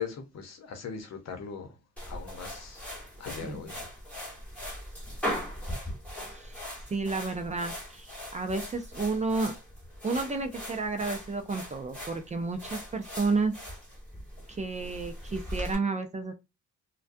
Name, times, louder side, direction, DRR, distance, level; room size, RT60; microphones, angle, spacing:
voice 1, 0.0-1.8 2.1-2.9 3.2-3.9, left 6 dB, 60° left, 0.8 m, -39 dB
sound 1, 2.0-15.7, equal, 5° left, 1.1 m, -40 dB
voice 2, 6.9-9.6 10.0-13.5 14.5-16.3, right 3 dB, 25° right, 0.4 m, -31 dB
2.4 x 2.2 x 2.5 m
cardioid pair, 90°, 30 cm